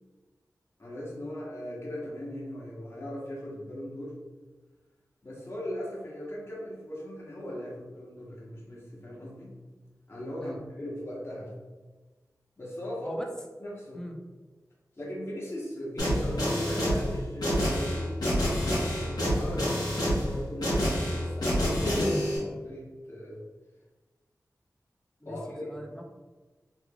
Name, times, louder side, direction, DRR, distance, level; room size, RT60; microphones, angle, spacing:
voice 1, 0.8-4.2 5.2-9.5 10.1-11.5 12.6-13.2 13.6-14.0 15.0-18.2 18.9-23.4 25.2-25.6, equal, 40° left, -6 dB, 1.2 m, -38 dB
sound 1, 16.0-22.4, equal, 85° left, 1.1 m, -27 dB
voice 2, 25.2-26.0, equal, 10° left, 1 dB, 0.5 m, -40 dB
3.4 x 3.2 x 2.3 m, 1.3 s
wide cardioid pair, 75°, 7 cm